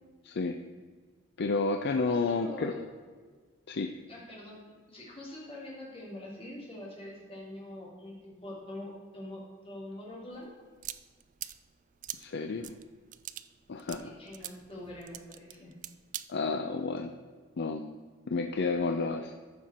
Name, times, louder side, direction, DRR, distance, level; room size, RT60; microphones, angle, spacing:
voice 1, 0.2-0.6 1.4-2.7 3.7-3.9 12.2-12.8 13.7-14.1 16.3-17.1 17.6-17.9 18.3-19.3, left 4 dB, 55° left, 6 dB, 0.5 m, -31 dB
voice 2, 2.1-2.8 4.1-4.6 4.9-10.5 14.0-15.7, left 1 dB, 30° left, -5 dB, 3.3 m, -44 dB
sound 1, 10.3-16.2, right 12 dB, 40° right, 0.3 m, -44 dB
14.0 x 5.8 x 4.3 m, 1.5 s
head